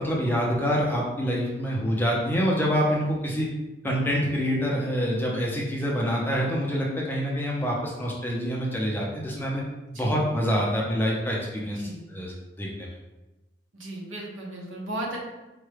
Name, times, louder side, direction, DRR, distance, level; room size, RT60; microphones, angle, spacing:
voice 1, 0.0-3.5 3.8-9.6 9.9-12.9, equal, 10° left, -3 dB, 0.5 m, -26 dB
voice 2, 9.9-10.3 11.7-12.1 13.7-15.2, right 1 dB, 85° right, -2 dB, 0.9 m, -36 dB
4.5 x 2.2 x 3.2 m, 1.1 s
head